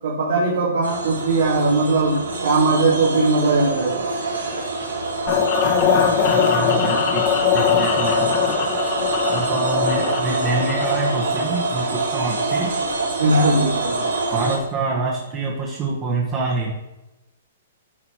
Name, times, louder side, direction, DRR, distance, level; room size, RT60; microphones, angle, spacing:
voice 1, 0.0-4.0 13.2-14.0, right 3 dB, 75° right, -5 dB, 2.3 m, -19 dB
sound 1, 0.8-14.6, right 3 dB, 90° right, 1.9 m, -25 dB
sound 2, 5.3-11.2, left 7 dB, 45° left, 1.5 m, -21 dB
voice 2, 6.3-7.3 7.5-8.3 9.3-12.7 14.3-16.7, right 3 dB, 30° right, -2 dB, 1.4 m, -26 dB
10.5 x 4.0 x 4.6 m, 1.0 s
hypercardioid pair, 135°, 0 cm